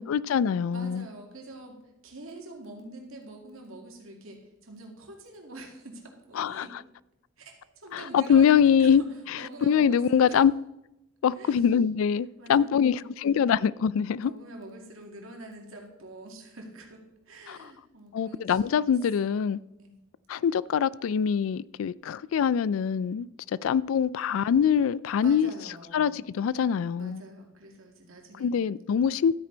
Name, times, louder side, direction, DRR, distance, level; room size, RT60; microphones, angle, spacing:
voice 1, 0.0-1.0 6.4-6.6 7.9-9.0 9.7-10.5 11.2-14.3 17.5-17.6 18.1-19.6 20.3-25.5 25.9-27.2 28.4-29.3, left 7 dB, 80° left, 0.3 m, -24 dB
voice 2, 0.7-6.8 7.4-10.4 11.3-11.7 12.4-13.1 14.2-20.0 25.2-26.2 27.0-28.7, right 2 dB, 90° right, 2.3 m, -46 dB
12.5 x 8.8 x 3.9 m
head